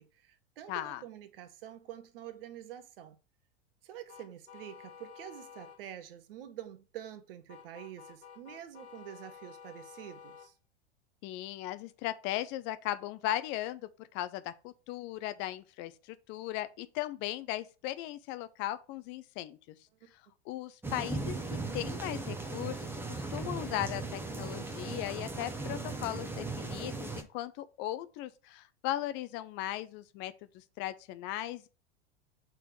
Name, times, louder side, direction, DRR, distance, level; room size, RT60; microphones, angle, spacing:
voice 1, 0.0-3.2 3.8-10.5 20.0-20.1, right 11 dB, 60° right, 0.9 m, -47 dB
voice 2, 0.7-1.0 11.2-19.8 20.1-20.2 20.5-31.7, left 14 dB, 35° left, 0.5 m, -38 dB
sound 1, 4.1-5.8 7.5-10.5, left 7 dB, 75° left, 1.0 m, -52 dB
sound 2, 20.8-27.2, right 3 dB, 5° right, 0.8 m, -38 dB
5.9 x 3.5 x 4.6 m
figure-of-eight pair, 90°, 33 cm